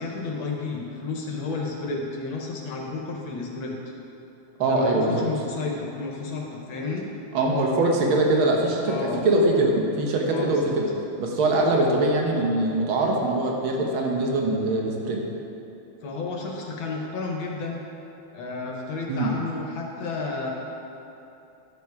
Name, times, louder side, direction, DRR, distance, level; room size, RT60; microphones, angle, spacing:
voice 1, 0.0-3.8 4.6-7.1 8.9-9.2 10.3-10.7 16.0-17.8 18.3-20.5, left 3 dB, 75° left, 0 dB, 1.8 m, -31 dB
voice 2, 4.6-5.3 7.3-10.9 11.2-15.2 19.1-19.3, right 2 dB, 80° right, 0 dB, 1.9 m, -22 dB
11.0 x 7.3 x 4.7 m, 2.8 s
omnidirectional pair, 2.2 m